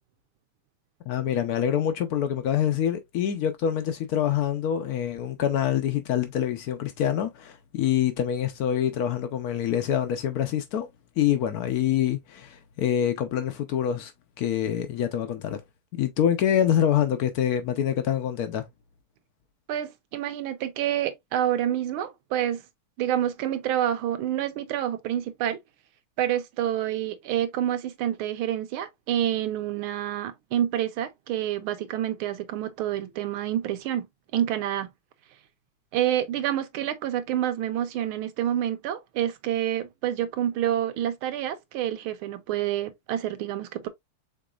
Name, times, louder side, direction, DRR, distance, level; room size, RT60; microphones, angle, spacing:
voice 1, 1.1-10.9 11.2-14.1 14.4-15.6 15.9-18.6, left 10 dB, 90° left, 0.8 m, -25 dB
voice 2, 19.7-22.6 23.0-25.6 26.2-34.1 34.3-34.9 35.9-43.9, right 11 dB, 80° right, 1.5 m, -28 dB
5.2 x 3.9 x 2.3 m
omnidirectional pair, 2.4 m